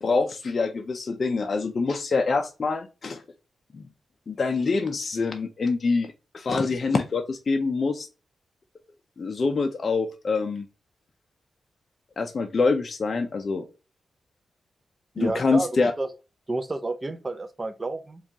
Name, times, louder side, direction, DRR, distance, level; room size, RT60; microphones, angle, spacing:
voice 1, 0.0-3.2 3.7-3.8 4.3-8.1 9.2-10.7 12.2-13.6 15.2-15.9, left 4 dB, 45° left, 0.4 m, -25 dB
voice 2, 15.2-15.7 16.0-16.1 16.5-18.2, right 2 dB, 25° right, 0.5 m, -30 dB
4.7 x 2.3 x 2.7 m
wide cardioid pair, 105°, 0 cm